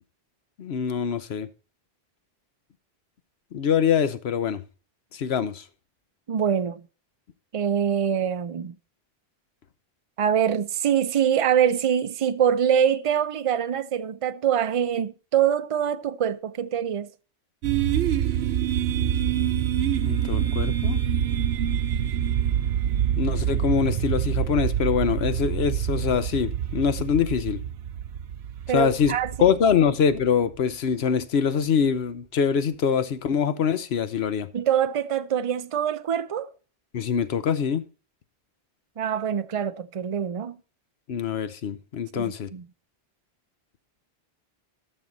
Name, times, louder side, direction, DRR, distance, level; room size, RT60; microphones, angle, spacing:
voice 1, 0.6-1.5 3.5-4.6 5.1-5.6 20.0-21.0 23.2-27.6 28.7-29.1 29.4-34.5 36.9-37.8 41.1-42.5, left 7 dB, 80° left, 1.1 m, -24 dB
voice 2, 6.3-6.8 7.5-8.8 10.2-17.1 28.7-29.5 34.5-36.5 39.0-40.6 42.1-42.6, right 9 dB, 40° right, 0.5 m, -24 dB
sound 1, 17.6-30.5, right 10 dB, 90° right, 0.9 m, -26 dB
12.5 x 6.4 x 3.9 m
omnidirectional pair, 1.0 m